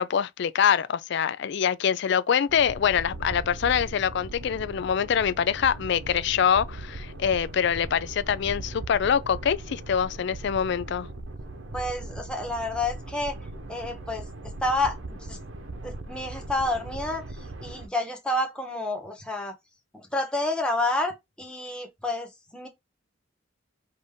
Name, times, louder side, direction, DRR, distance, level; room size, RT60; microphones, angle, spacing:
voice 1, 0.0-11.1, left 8 dB, 65° left, 0.4 m, -24 dB
sound 1, 2.5-17.9, right 2 dB, 85° right, 1.0 m, -39 dB
voice 2, 11.7-13.4 13.7-14.3 14.6-15.4 15.8-17.2 17.6-19.5 19.9-22.7, left 2 dB, 5° left, 1.1 m, -29 dB
5.2 x 2.7 x 3.5 m
head